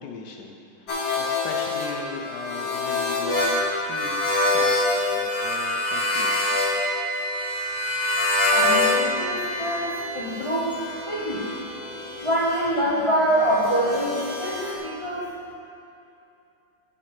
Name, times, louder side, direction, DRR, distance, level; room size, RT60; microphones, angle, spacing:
voice 1, 0.0-4.7 5.1-6.6, left 5 dB, 70° left, 2 dB, 1.1 m, -39 dB
sound 1, 0.9-9.0 9.3-14.7, left 2 dB, 55° left, 1.5 m, -26 dB
Bowed string instrument, 5.4-12.4, right 1 dB, 80° right, 2.7 m, -44 dB
Wind instrument woodwind instrument, 6.1-10.3, right 3 dB, 55° right, 2.1 m, -33 dB
voice 2, 8.5-10.8 11.1-15.3, equal, 35° left, -6 dB, 0.4 m, -25 dB
7.4 x 5.1 x 5.8 m, 2.6 s
omnidirectional pair, 2.1 m